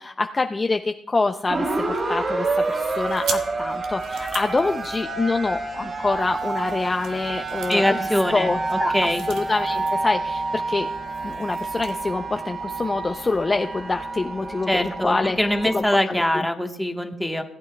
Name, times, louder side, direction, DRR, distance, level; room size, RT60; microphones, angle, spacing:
voice 1, 0.0-2.5 2.7-8.9 9.3-10.9 11.2-15.4 15.7-16.4, left 3 dB, 25° left, 6 dB, 0.5 m, -26 dB
sound 1, 1.5-15.8, right 3 dB, 40° right, 2.7 m, -28 dB
sound 2, 2.5-5.6 6.1-10.0 10.3-10.5 10.8-12.0, right 6 dB, 85° right, 1.1 m, -39 dB
voice 2, 7.7-9.2 14.7-17.4, left 1 dB, 5° left, 4 dB, 1.2 m, -23 dB
18.5 x 8.6 x 2.3 m, 0.75 s
cardioid pair, 90°, 0 cm